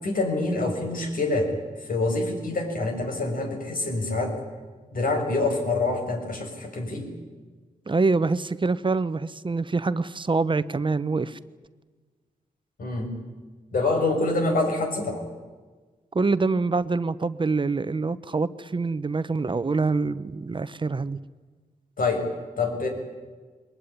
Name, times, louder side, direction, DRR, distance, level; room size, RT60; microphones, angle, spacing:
voice 1, 0.0-1.5 1.8-4.4 4.9-7.1 12.8-13.2 13.7-15.2 22.0-22.2 22.6-22.9, left 2 dB, 75° left, 3 dB, 6.1 m, -26 dB
voice 2, 7.9-11.4 16.1-21.2, right 3 dB, 35° right, 15 dB, 0.9 m, -25 dB
22.5 x 20.5 x 9.9 m, 1.4 s
cardioid pair, 75°, 15 cm